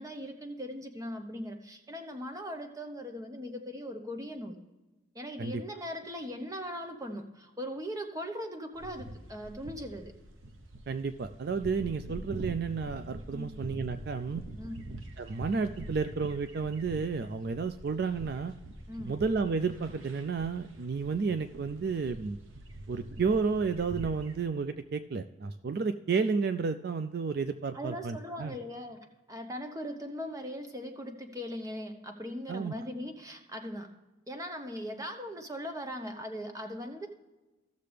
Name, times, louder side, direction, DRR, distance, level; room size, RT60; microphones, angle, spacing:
voice 1, 0.0-4.6 5.1-10.1 13.3-13.5 14.6-14.8 18.9-19.2 27.7-29.0 29.3-33.9 34.3-37.1, equal, 15° right, 5 dB, 0.9 m, -39 dB
morning at pond edit, 8.7-24.5, right 1 dB, 85° right, 0.9 m, -45 dB
voice 2, 10.9-14.4 15.2-18.5 19.0-22.4 22.9-28.5 32.5-32.9, right 5 dB, 50° right, 10 dB, 0.3 m, -31 dB
15.5 x 6.7 x 3.4 m, 1.1 s
head